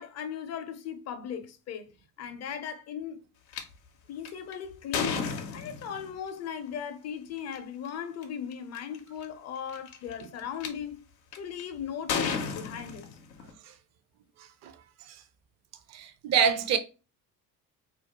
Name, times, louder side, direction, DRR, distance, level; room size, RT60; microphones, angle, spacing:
voice 1, 0.0-1.9 2.2-3.2 4.1-11.0 11.4-13.1, left 8 dB, 35° left, 0.5 m, -38 dB
sound 1, 3.5-3.6 4.3-6.1 7.4-7.6 8.2-8.3 8.5-9.0 9.7-10.7 11.3-11.6 12.1-13.5, left 6 dB, 90° left, 0.6 m, -32 dB
voice 2, 15.9-16.8, right 7 dB, 35° right, 0.5 m, -25 dB
2.5 x 2.2 x 2.8 m
hypercardioid pair, 60°, 49 cm